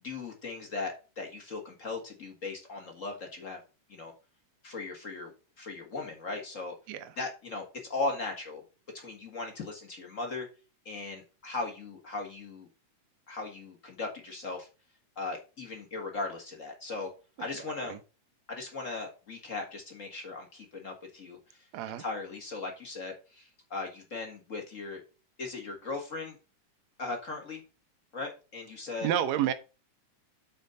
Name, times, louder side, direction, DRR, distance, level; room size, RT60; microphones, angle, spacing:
voice 1, 0.0-3.6 3.9-4.1 4.6-6.7 7.2-8.6 8.9-10.5 10.8-12.7 13.3-14.7 15.1-17.1 17.4-18.0 18.5-21.7 22.0-25.0 25.4-26.4 27.0-27.6 28.1-29.1, left 3 dB, 35° left, 2 dB, 1.3 m, -38 dB
voice 2, 17.5-18.0 21.7-22.0 29.0-29.5, right 10 dB, 70° right, 11 dB, 1.8 m, -30 dB
8.2 x 4.4 x 5.2 m, 0.32 s
omnidirectional pair, 3.7 m